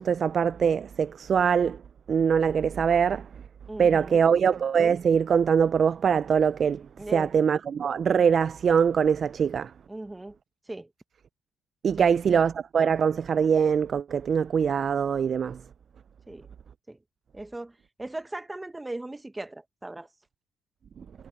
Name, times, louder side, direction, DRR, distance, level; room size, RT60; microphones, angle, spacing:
voice 1, 0.0-1.8 2.1-3.2 3.8-6.8 7.1-9.7 11.8-15.6, right 7 dB, 50° right, 0.3 m, -23 dB
voice 2, 3.7-4.3 7.0-7.4 9.9-10.4 10.7-10.9 12.0-12.2 16.3-16.5 16.9-17.0 17.3-20.1, right 2 dB, 15° right, 1.0 m, -38 dB
cardioid pair, 90°, 0 cm